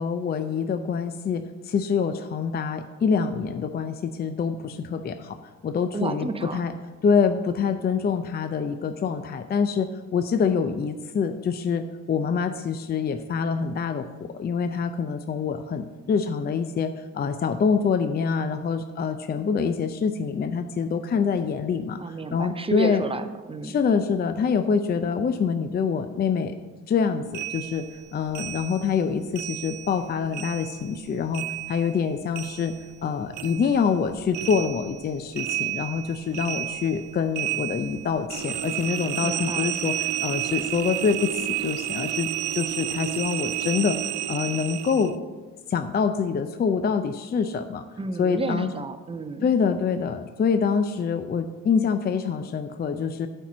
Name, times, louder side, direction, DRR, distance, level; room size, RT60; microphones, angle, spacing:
voice 1, 0.0-5.4 5.6-6.7 7.0-23.0 23.6-26.6 26.9-27.9 28.1-31.4 31.7-32.7 33.0-44.0 44.3-45.2 45.7-47.8 48.2-48.7 49.4-53.3, left 6 dB, 35° left, 9 dB, 0.5 m, -25 dB
voice 2, 5.9-6.7 22.0-23.8 39.2-39.8 48.0-49.5, right 3 dB, 20° right, 9 dB, 0.6 m, -31 dB
sound 1, 27.3-30.1 30.3-33.1 33.3-45.1, right 13 dB, 75° right, 0.5 m, -31 dB
9.0 x 4.5 x 6.1 m, 1.3 s
cardioid pair, 90°, 30 cm